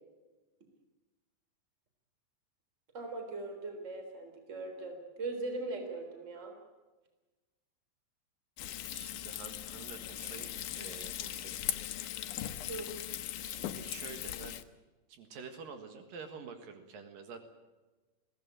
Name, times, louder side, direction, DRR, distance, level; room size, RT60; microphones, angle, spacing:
voice 1, 2.9-6.5 12.7-12.9, right 3 dB, 20° right, 5 dB, 3.7 m, -40 dB
Frying (food), 8.6-14.6, left 12 dB, 70° left, 2.3 m, -39 dB
voice 2, 8.7-10.5 10.8-11.6 13.4-14.6 15.1-17.4, right 5 dB, 75° right, 7 dB, 3.4 m, -48 dB
21.5 x 17.0 x 8.8 m, 1.2 s
omnidirectional pair, 4.0 m